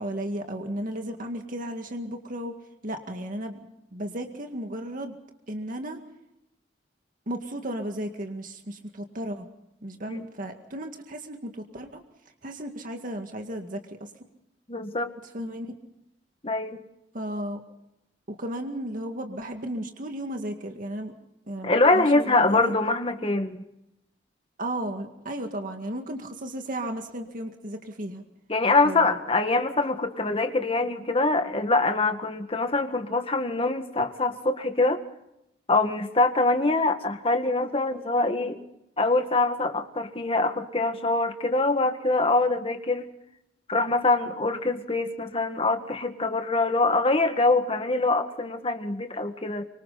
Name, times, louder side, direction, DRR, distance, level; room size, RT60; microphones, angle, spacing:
voice 1, 0.0-2.5 2.8-3.6 3.9-5.2 5.5-6.0 7.3-9.5 9.8-12.0 12.4-14.1 15.3-15.7 17.1-17.6 18.3-21.1 21.5-22.7 24.6-28.2 28.8-29.2, right 1 dB, 50° right, 4 dB, 2.1 m, -34 dB
voice 2, 14.7-15.1 16.4-16.8 21.6-23.7 28.5-35.0 35.7-38.6 39.0-43.1 43.7-49.6, left 2 dB, 30° left, 7 dB, 1.8 m, -24 dB
25.0 x 25.0 x 4.1 m, 0.85 s
head